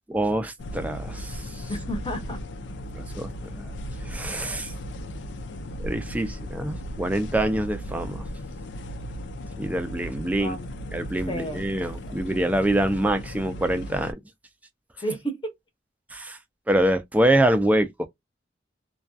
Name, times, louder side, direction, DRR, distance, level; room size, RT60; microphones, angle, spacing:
voice 1, 0.1-1.6 2.9-3.7 4.1-4.7 5.8-8.2 9.6-10.6 10.9-14.2 16.1-16.4 16.7-18.1, right 1 dB, 10° right, 0.4 m, -25 dB
sound 1, 0.6-14.1, equal, 70° left, 0.4 m, -36 dB
voice 2, 1.7-2.4 10.4-10.8 11.3-11.6 15.0-15.5, right 1 dB, 25° left, 0.8 m, -31 dB
2.3 x 2.2 x 2.5 m
head